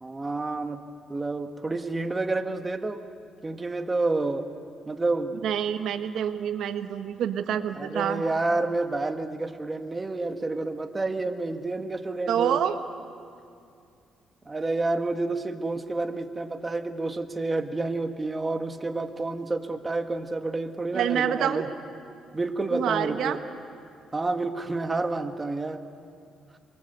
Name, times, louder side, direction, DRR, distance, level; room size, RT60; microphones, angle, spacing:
voice 1, 0.0-0.8 1.1-3.0 3.4-4.5 4.9-5.5 7.8-12.6 14.5-21.7 22.3-23.4 24.1-25.8, right 2 dB, 25° right, 6 dB, 1.8 m, -29 dB
voice 2, 5.4-8.2 12.3-12.8 20.9-21.7 22.7-23.4, right 9 dB, 75° right, 8 dB, 1.5 m, -27 dB
26.5 x 23.5 x 8.2 m, 2.4 s
cardioid pair, 90°, 0 cm